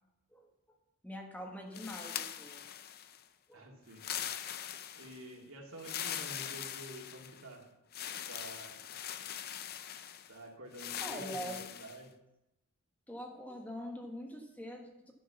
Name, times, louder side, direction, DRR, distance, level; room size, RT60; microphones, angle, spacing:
voice 1, 1.0-2.7 3.5-3.6 11.0-11.7 13.1-15.1, equal, 5° left, 1 dB, 1.4 m, -44 dB
sound 1, 1.7-3.2 3.9-5.3 5.8-7.5 7.9-10.3 10.7-12.0, left 10 dB, 45° left, 0.5 m, -42 dB
voice 2, 3.5-4.1 4.9-7.6 8.3-8.8 10.3-12.1, right 1 dB, 75° right, 0 dB, 2.6 m, -49 dB
11.5 x 6.6 x 7.0 m, 0.91 s
head